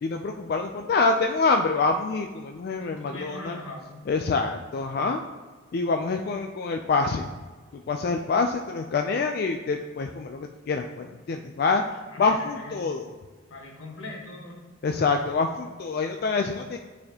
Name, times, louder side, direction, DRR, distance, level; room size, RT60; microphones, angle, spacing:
voice 1, 0.0-3.6 4.1-5.2 5.7-7.3 7.9-13.1 14.8-16.8, left 4 dB, 50° left, 4 dB, 0.3 m, -26 dB
voice 2, 2.8-4.1 12.1-12.9 13.5-14.6, left 2 dB, 85° left, 1 dB, 1.1 m, -41 dB
8.9 x 4.1 x 2.8 m, 1.4 s
head